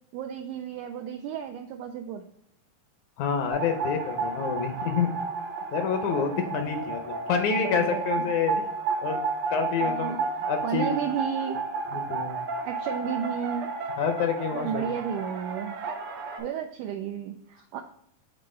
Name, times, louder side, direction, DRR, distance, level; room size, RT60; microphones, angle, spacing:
voice 1, 0.1-2.2 7.5-8.3 9.8-11.6 11.9-12.0 12.6-13.7 14.5-15.8 16.4-17.8, right 8 dB, 80° right, 4 dB, 1.8 m, -33 dB
voice 2, 3.2-5.1 5.7-8.6 9.0-9.2 9.5-10.2 10.5-10.9 11.9-12.4 14.0-14.9, left 6 dB, 75° left, 5 dB, 1.9 m, -28 dB
sound 1, 3.5-16.4, right 4 dB, 65° right, 1.8 m, -32 dB
7.6 x 4.3 x 3.2 m, 0.70 s
omnidirectional pair, 3.8 m